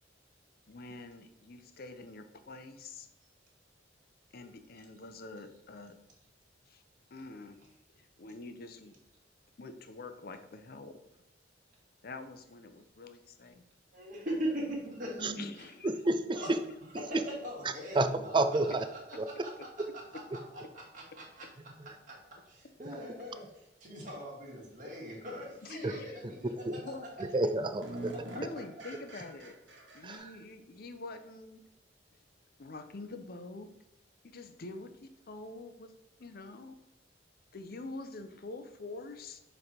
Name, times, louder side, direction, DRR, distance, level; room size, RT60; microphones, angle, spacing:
voice 1, 0.7-3.1 4.3-5.9 6.7-6.8 7.1-7.6 7.9-9.0 9.6-10.9 12.0-13.6 15.4-15.9 16.4-16.5 25.6-26.2 26.8-27.1 28.3-29.6 29.9-31.6 32.6-33.7 34.2-35.9 36.2-36.8 37.5-39.4, left 3 dB, 55° left, 8 dB, 0.6 m, -46 dB
voice 2, 13.9-15.4 16.3-16.5 17.0-17.2 17.4-18.4 18.6-18.7 20.9-21.5 22.1-22.2 22.5-23.4 23.8-27.3, equal, 45° right, -3 dB, 2.0 m, -40 dB
voice 3, 15.8-16.6 17.1-17.2 17.6-18.1 18.3-18.9 19.2-19.3 19.8-19.9 21.8-22.0 22.8-22.9 25.8-25.9 26.2-26.3 26.7-26.8 27.2-28.1 30.0-30.4, right 2 dB, 25° right, 10 dB, 0.4 m, -30 dB
sound 1, 22.5-22.6 25.4-25.5 26.0-26.4 26.9-27.0 27.2-30.2, right 1 dB, 75° right, 1.2 m, -46 dB
6.5 x 3.3 x 4.3 m, 0.88 s
head